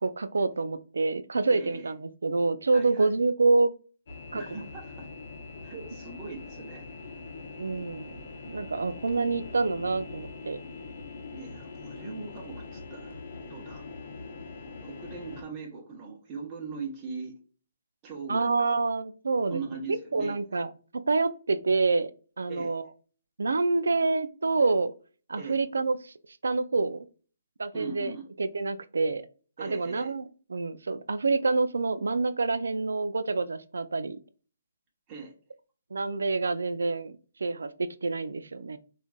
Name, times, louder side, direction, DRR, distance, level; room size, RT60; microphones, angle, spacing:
voice 1, 0.0-3.7 4.3-4.4 7.6-10.6 18.3-19.6 20.1-20.7 21.1-22.1 22.4-22.9 23.4-24.9 25.3-26.1 26.4-27.1 27.6-28.1 28.4-29.2 29.6-34.2 35.9-37.1 37.4-38.8, right 3 dB, 80° right, 12 dB, 0.3 m, -27 dB
voice 2, 1.5-1.9 2.7-3.2 4.3-5.1 5.6-6.8 11.3-13.2 13.5-13.9 14.8-17.3 18.0-18.8 19.5-20.6 22.5-22.8 25.4-25.6 27.7-28.2 29.6-30.1 35.1-35.3, right 4 dB, 25° right, -2 dB, 0.9 m, -40 dB
sound 1, 4.1-15.4, left 4 dB, 60° left, 0.6 m, -43 dB
3.7 x 2.4 x 2.2 m, 0.39 s
hypercardioid pair, 145°, 0 cm